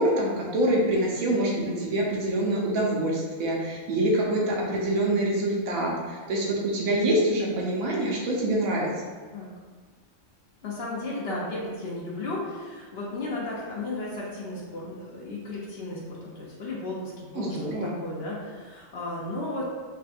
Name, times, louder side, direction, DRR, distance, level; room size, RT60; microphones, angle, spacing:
voice 1, 0.0-8.9 17.3-17.9, right 1 dB, 85° right, -3 dB, 1.2 m, -25 dB
voice 2, 10.6-19.6, left 2 dB, 60° left, -4 dB, 0.8 m, -34 dB
4.5 x 2.2 x 2.5 m, 1.5 s
omnidirectional pair, 1.4 m